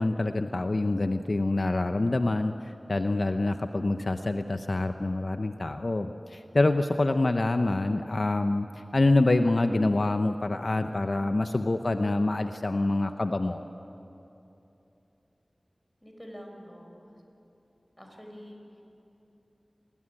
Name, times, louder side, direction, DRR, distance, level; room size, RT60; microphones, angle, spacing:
voice 1, 0.0-13.6, left 2 dB, 55° left, 7 dB, 0.8 m, -26 dB
voice 2, 16.0-17.1 18.0-18.8, equal, 5° left, 2 dB, 5.3 m, -46 dB
27.0 x 20.0 x 10.0 m, 2.9 s
wide cardioid pair, 65°, 0 cm